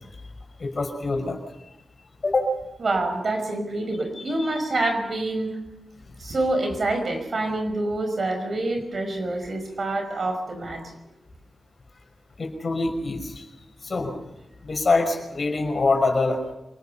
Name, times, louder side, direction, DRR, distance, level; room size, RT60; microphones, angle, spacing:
voice 1, 0.6-1.4 2.2-2.5 4.2-4.6 12.4-13.4 13.8-14.1 14.6-16.4, left 3 dB, 50° left, 4 dB, 5.5 m, -25 dB
voice 2, 2.8-5.5 6.2-10.8, right 2 dB, 55° right, 5 dB, 5.5 m, -26 dB
27.0 x 19.0 x 5.8 m, 0.94 s
cardioid pair, 75°, 0 cm